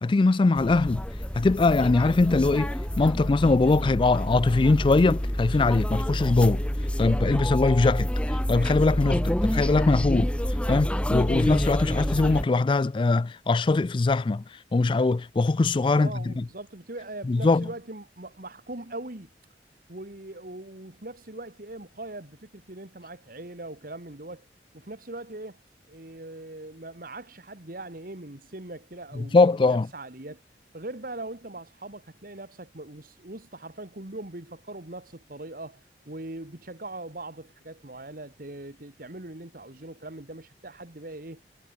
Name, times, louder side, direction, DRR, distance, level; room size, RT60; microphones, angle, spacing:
voice 1, 0.0-1.0 1.3-6.6 7.0-8.1 8.5-10.3 10.7-14.4 14.7-16.4 17.3-17.7 29.2-29.9, left 3 dB, 30° left, 0.3 m, -22 dB
sound 1, 0.6-12.4, equal, 5° left, 0.8 m, -28 dB
voice 2, 16.0-19.3 19.9-24.5 24.7-25.6 25.9-30.4 30.7-41.4, right 2 dB, 50° right, 2.0 m, -41 dB
head